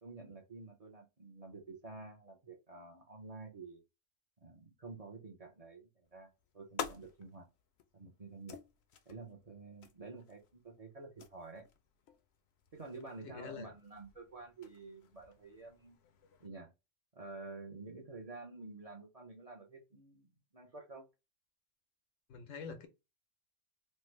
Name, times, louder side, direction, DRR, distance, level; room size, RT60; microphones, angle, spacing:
voice 1, 0.0-3.8 4.4-7.5 7.9-8.6 9.1-11.6 12.7-16.0 16.4-16.7 17.1-21.0, right 3 dB, 35° right, 0.7 m, -50 dB
sound 1, 6.0-16.5, left 7 dB, 65° left, 0.8 m, -51 dB
voice 2, 13.2-13.7 22.3-22.9, left 6 dB, 85° left, 1.1 m, -45 dB
3.2 x 2.1 x 3.1 m
omnidirectional pair, 1.3 m